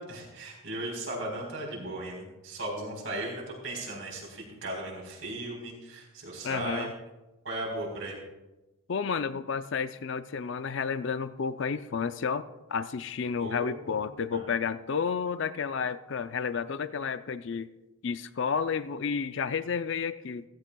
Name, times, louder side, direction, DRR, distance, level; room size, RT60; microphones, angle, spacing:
voice 1, 0.0-6.9 7.4-8.2 13.4-14.5, right 1 dB, 70° right, -2 dB, 4.1 m, -37 dB
voice 2, 6.4-6.9 8.9-17.7 18.0-20.4, left 6 dB, 60° left, 12 dB, 0.5 m, -31 dB
15.0 x 14.5 x 2.3 m, 1.0 s
head